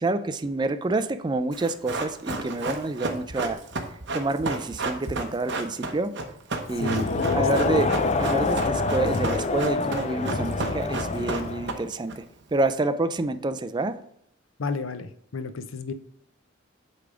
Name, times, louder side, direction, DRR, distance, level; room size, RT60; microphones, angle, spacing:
voice 1, 0.0-3.6 4.1-6.2 6.7-7.1 7.3-12.2 12.5-14.0, right 2 dB, 20° right, 10 dB, 0.4 m, -28 dB
Run, 1.5-12.1 12.4-12.5, right 3 dB, 60° right, 1.0 m, -32 dB
Crowd, 6.7-11.9, left 3 dB, 35° left, 0.4 m, -26 dB
voice 2, 6.8-7.8 14.6-15.9, left 4 dB, 85° left, 11 dB, 0.6 m, -33 dB
8.4 x 3.4 x 5.0 m, 0.71 s
head